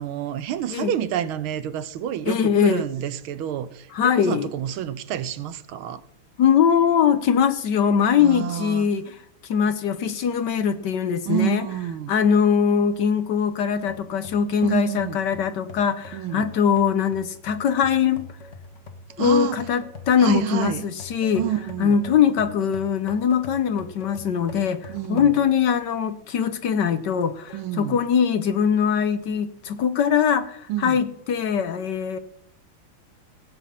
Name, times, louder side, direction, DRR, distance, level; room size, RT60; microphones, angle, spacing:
voice 1, 0.0-6.0 8.2-8.9 11.3-12.1 14.6-15.2 16.1-16.5 19.2-19.6 20.2-20.9 21.3-22.0 24.9-25.4 27.5-28.0 30.7-31.0, right 11 dB, 80° right, 1.6 m, -28 dB
voice 2, 2.3-2.8 3.9-4.5 6.4-9.1 9.5-11.6 12.1-18.2 19.2-21.4 21.8-32.2, left 7 dB, 60° left, 1.3 m, -21 dB
sound 1, 13.9-25.8 26.3-26.4 27.1-27.7, left 3 dB, 40° left, 1.5 m, -42 dB
16.5 x 5.9 x 8.5 m
omnidirectional pair, 2.3 m